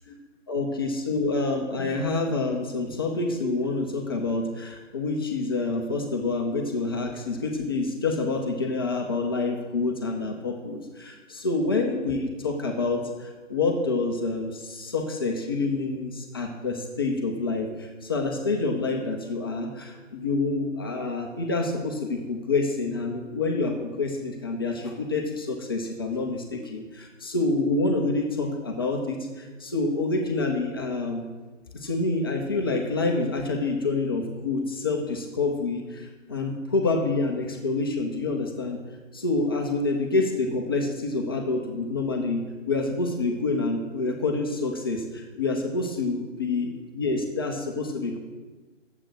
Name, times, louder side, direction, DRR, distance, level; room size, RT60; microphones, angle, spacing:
voice 1, 0.5-31.2 31.7-38.8 39.1-48.2, left 3 dB, 20° left, 1 dB, 0.7 m, -27 dB
11.0 x 7.8 x 6.2 m, 1.3 s
figure-of-eight pair, 155°, 38 cm